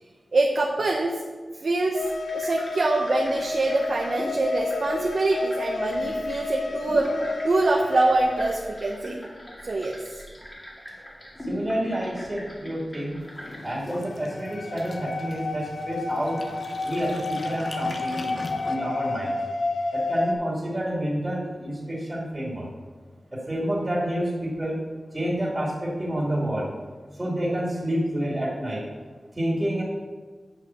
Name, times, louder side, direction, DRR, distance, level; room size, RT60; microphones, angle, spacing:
voice 1, 0.3-1.2 1.6-2.0 2.3-9.2 9.6-10.2, right 2 dB, 60° right, 0 dB, 0.8 m, -24 dB
sound 1, 1.9-8.9 14.1-20.3, left 3 dB, 80° left, 0.8 m, -31 dB
sound 2, 2.0-13.8, equal, 20° left, 2.1 m, -40 dB
voice 2, 11.4-13.2 13.6-16.5 16.8-19.4 19.9-22.7 23.3-24.8 25.1-26.7 27.1-28.8 29.3-29.8, right 1 dB, 20° right, -4 dB, 2.2 m, -29 dB
sound 3, 13.2-18.8, left 2 dB, 50° left, 0.8 m, -40 dB
8.5 x 5.7 x 5.6 m, 1.4 s
wide cardioid pair, 110°, 0 cm